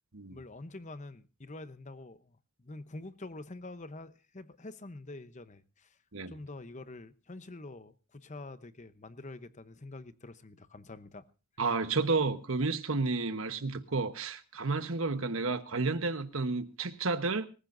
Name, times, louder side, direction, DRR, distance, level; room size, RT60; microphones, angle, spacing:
voice 1, 0.3-6.0 6.3-11.2, left 2 dB, 30° left, 0.8 m, -46 dB
voice 2, 11.6-17.5, right 3 dB, 60° right, 1.2 m, -31 dB
24.5 x 15.0 x 2.6 m
head